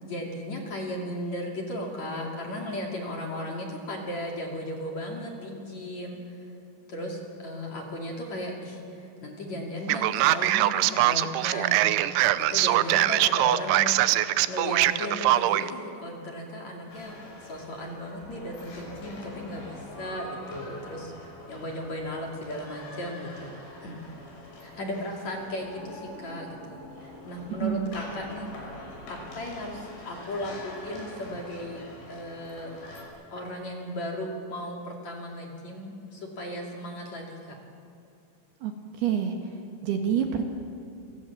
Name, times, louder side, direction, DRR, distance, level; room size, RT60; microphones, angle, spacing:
voice 1, 0.0-6.4 6.9-14.0 14.5-17.1 17.4-23.5 23.8-24.0 24.6-28.8 29.1-31.8 32.1-32.7 33.3-37.6, left 1 dB, 40° left, 0 dB, 3.2 m, -36 dB
Male speech man speaking, 9.9-15.7, right 15 dB, 80° right, 3.0 m, -22 dB
sound 1, 16.9-33.0, left 2 dB, 60° left, 8.7 m, -44 dB
voice 2, 39.0-39.4 39.8-40.4, right 8 dB, 65° right, 4 dB, 3.1 m, -26 dB
28.5 x 26.5 x 7.4 m, 2.5 s
omnidirectional pair, 5.8 m